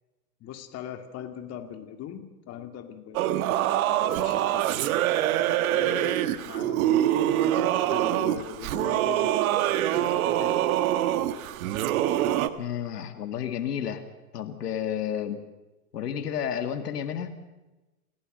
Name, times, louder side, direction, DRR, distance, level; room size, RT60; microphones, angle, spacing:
voice 1, 0.4-3.6 4.0-4.7 5.7-6.2 6.4-9.3 9.9-10.6, left 9 dB, 35° left, 7 dB, 2.5 m, -41 dB
Singing / Musical instrument, 3.1-12.5, right 12 dB, 65° right, 1.6 m, -25 dB
voice 2, 12.6-14.0 14.3-15.4 15.9-17.3, left 9 dB, 90° left, 9 dB, 2.1 m, -31 dB
28.5 x 16.5 x 6.5 m, 1.1 s
hypercardioid pair, 125°, 46 cm